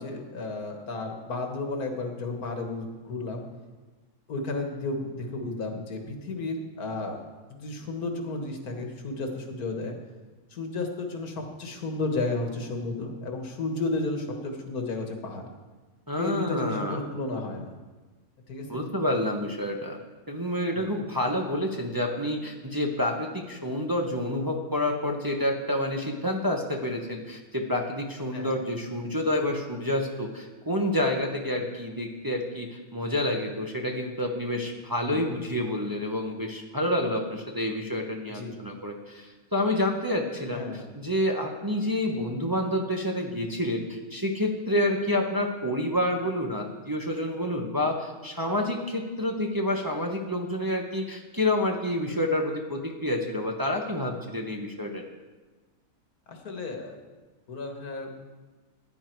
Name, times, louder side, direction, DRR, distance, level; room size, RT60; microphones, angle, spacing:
voice 1, 0.0-3.4 4.3-7.2 7.5-9.9 10.5-15.5 16.2-17.7 18.5-18.8 20.7-21.0 28.3-28.5 31.5-31.7 35.1-35.3 38.3-38.6 40.5-40.9 56.3-57.0 57.5-58.2, left 3 dB, 85° left, 3 dB, 2.0 m, -33 dB
voice 2, 16.1-17.0 18.7-20.0 20.3-40.7 40.9-55.0, left 1 dB, 15° right, 1 dB, 1.0 m, -28 dB
15.5 x 9.9 x 4.6 m, 1.3 s
omnidirectional pair, 1.5 m